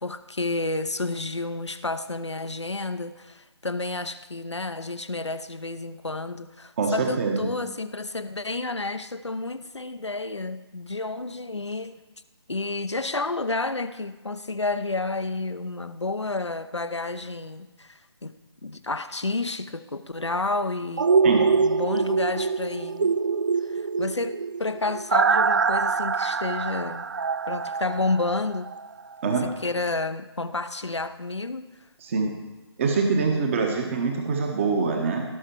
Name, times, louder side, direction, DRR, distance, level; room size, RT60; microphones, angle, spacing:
voice 1, 0.0-12.0 12.5-18.4 18.6-23.1 23.6-27.1 27.5-28.7 29.2-31.7, left 3 dB, 85° left, 11 dB, 0.8 m, -30 dB
voice 2, 6.8-7.5 21.2-21.4 29.2-29.5 32.0-32.3 32.8-35.2, right 4 dB, 30° right, 3 dB, 1.2 m, -24 dB
sound 1, 21.0-28.9 29.2-29.3, right 5 dB, 45° right, 0.4 m, -24 dB
17.0 x 6.6 x 4.6 m, 1.1 s
figure-of-eight pair, 145°, 14 cm